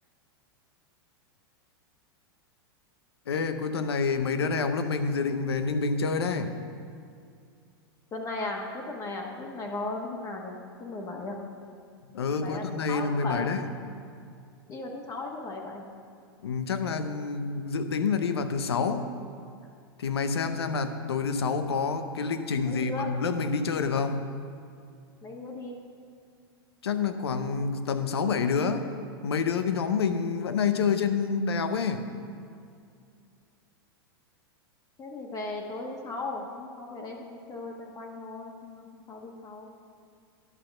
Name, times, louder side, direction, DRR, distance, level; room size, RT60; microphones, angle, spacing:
voice 1, 3.3-6.6 12.1-13.7 16.4-19.1 20.0-24.3 26.8-28.9 29.2-32.2, left 5 dB, 85° left, 9 dB, 0.8 m, -28 dB
voice 2, 8.1-11.4 12.3-13.5 14.7-15.8 22.6-23.1 25.2-25.8 35.0-39.7, left 2 dB, 25° left, 0 dB, 1.3 m, -37 dB
11.0 x 5.9 x 6.4 m, 2.4 s
hypercardioid pair, 105°, 13 cm